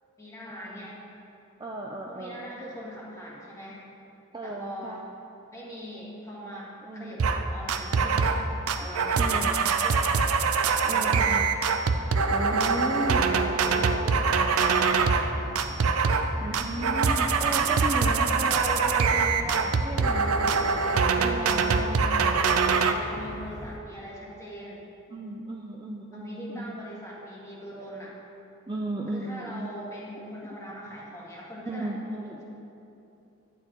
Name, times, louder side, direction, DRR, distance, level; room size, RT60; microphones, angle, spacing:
voice 1, 0.2-1.0 2.1-3.8 4.4-5.0 5.5-8.5 8.7-11.4 12.5-12.8 13.1-15.6 20.5-24.8 26.1-28.2 29.1-32.4, equal, 15° left, -6 dB, 1.8 m, -41 dB
voice 2, 1.6-2.5 4.3-5.0 6.8-7.1 9.2-9.6 10.8-11.5 12.3-13.2 16.4-20.5 21.2-21.6 25.1-26.7 28.7-29.7 30.5-30.6 31.7-32.4, right 2 dB, 20° right, 0 dB, 0.4 m, -35 dB
sound 1, 7.2-7.4 7.7-8.4 8.7-15.3 15.6-16.3 16.5-22.9, right 5 dB, 75° right, 0.5 m, -24 dB
sound 2, 12.6-23.8, left 2 dB, 35° left, 0.5 m, -41 dB
12.0 x 8.8 x 3.0 m, 2.8 s
head